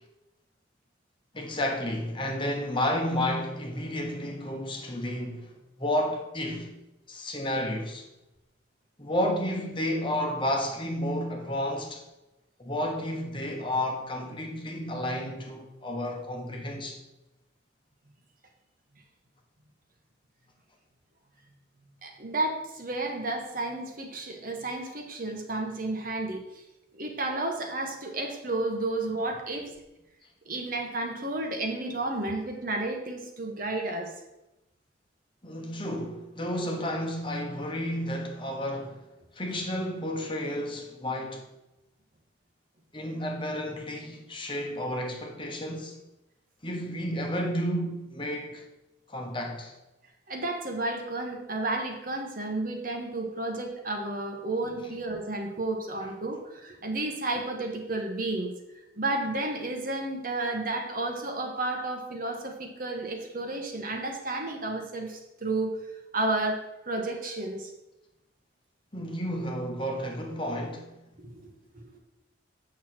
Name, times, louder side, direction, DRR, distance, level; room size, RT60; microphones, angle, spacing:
voice 1, 1.3-5.5 5.8-6.8 7.1-8.1 9.0-12.0 12.6-17.0 35.4-39.0 39.3-41.4 42.9-46.0 46.6-48.6 49.1-49.7 68.9-70.9, left 1 dB, 25° left, 1.1 m, -31 dB
voice 2, 22.0-26.6 26.9-29.7 30.4-34.1 50.3-58.5 59.0-65.8 66.1-67.7 71.2-72.0, right 2 dB, 45° right, 1.3 m, -32 dB
8.2 x 6.3 x 4.4 m
head